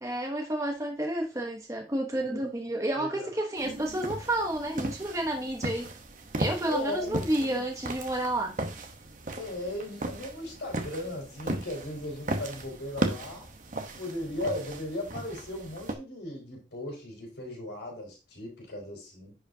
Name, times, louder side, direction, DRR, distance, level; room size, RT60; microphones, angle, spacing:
voice 1, 0.0-5.9 6.4-8.6, right 1 dB, 15° right, 1 dB, 1.0 m, -30 dB
voice 2, 2.9-3.3 6.6-7.6 9.3-13.5 14.0-19.4, left 1 dB, 75° left, -1 dB, 4.7 m, -37 dB
sound 1, 3.6-16.0, right 1 dB, 45° right, 1.0 m, -36 dB
10.5 x 4.9 x 2.8 m, 0.30 s
head